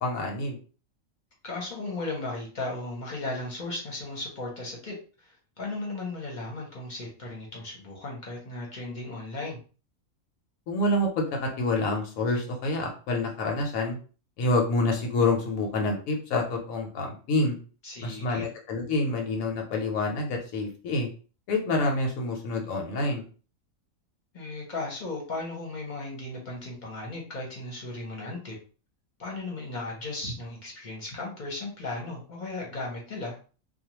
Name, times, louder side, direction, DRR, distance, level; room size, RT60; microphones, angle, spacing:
voice 1, 0.0-0.6 10.7-14.0 14.4-17.6 18.0-21.1 21.5-23.3, left 2 dB, 85° left, 1 dB, 1.1 m, -27 dB
voice 2, 1.4-9.6 17.8-18.5 24.3-28.6 29.2-33.4, left 2 dB, 40° left, -1 dB, 0.8 m, -36 dB
2.4 x 2.2 x 2.9 m, 0.37 s
omnidirectional pair, 1.4 m